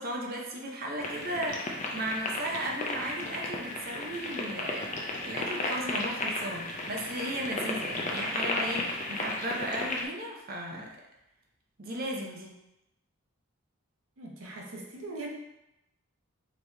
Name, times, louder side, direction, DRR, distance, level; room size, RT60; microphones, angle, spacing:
voice 1, 0.0-11.0 11.8-12.5, right 1 dB, 40° right, 0 dB, 0.6 m, -36 dB
sound 1, 1.0-10.1, left 2 dB, 30° left, 0.5 m, -34 dB
voice 2, 14.2-15.3, right 2 dB, 70° right, -1 dB, 0.9 m, -40 dB
4.5 x 2.9 x 3.3 m, 0.89 s
head